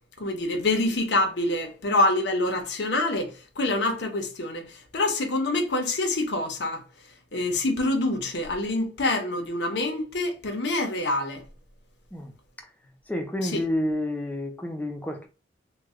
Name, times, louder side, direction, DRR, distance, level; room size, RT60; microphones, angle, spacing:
voice 1, 0.2-6.8 7.3-11.4 13.4-13.6, left 2 dB, 65° left, 0.8 m, -26 dB
voice 2, 13.1-15.3, left 1 dB, 10° left, 0.5 m, -29 dB
3.2 x 2.3 x 3.6 m
head